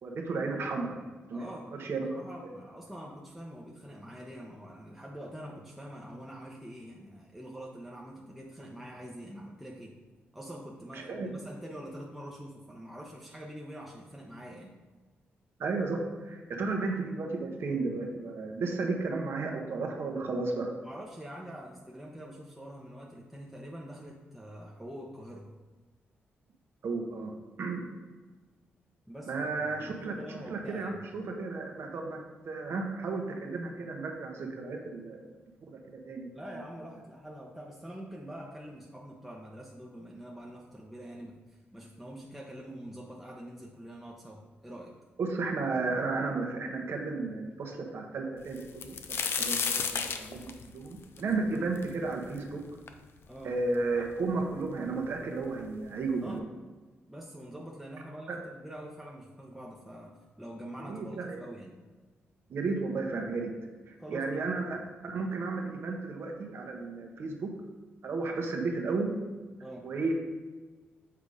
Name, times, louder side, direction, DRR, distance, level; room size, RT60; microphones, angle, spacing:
voice 1, 0.0-1.0 1.3-1.4 1.7-2.1 10.9-11.3 15.6-20.7 26.8-27.3 27.6-27.8 29.3-30.1 30.5-32.2 32.4-35.3 35.7-36.3 45.2-49.0 49.3-52.6 53.4-56.4 58.3-58.4 60.8-61.4 62.5-63.5 63.9-64.8 65.0-67.5 68.0-69.1 69.8-70.1, right 3 dB, 65° right, 2 dB, 1.2 m, -33 dB
voice 2, 1.3-10.0 10.3-14.8 20.8-25.5 29.1-31.0 36.3-44.9 53.3-53.6 56.2-56.5 57.1-61.8 64.0-64.5 69.6-69.9, equal, 5° right, -3 dB, 0.9 m, -45 dB
sound 1, 48.6-52.4 52.9-53.0 53.7-53.8 54.1-54.8 55.7-55.8 56.1-56.3, left 6 dB, 65° left, 0.6 m, -33 dB
7.3 x 4.0 x 4.9 m, 1.3 s
cardioid pair, 85°, 4 cm